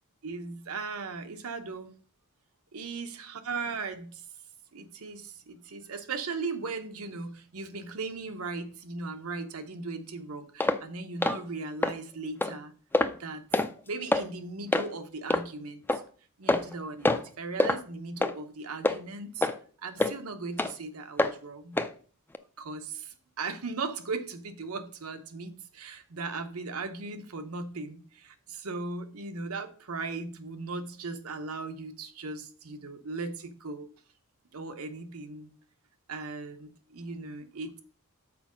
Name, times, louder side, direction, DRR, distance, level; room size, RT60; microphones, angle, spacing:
voice 1, 0.2-1.9 2.7-4.2 4.7-12.7 13.2-13.4 13.9-16.0 16.4-19.5 19.8-21.8 22.6-33.9 34.5-35.5 36.1-37.8, right 3 dB, 85° right, 0.9 m, -38 dB
sound 1, 10.6-10.8 11.2-11.4 11.8-11.9 12.4-12.5 12.9-13.2 13.5-13.7 14.1-14.3 14.7-14.9 15.3-15.4 15.9-16.0 16.5-16.7 17.0-17.3 17.6-17.8 18.2-18.4 18.8-19.0 19.4-19.6 20.0-20.1 20.6-20.7 21.2-21.3 21.8-21.9 22.3-22.4, left 2 dB, 10° left, 0.4 m, -25 dB
6.0 x 4.6 x 6.2 m
head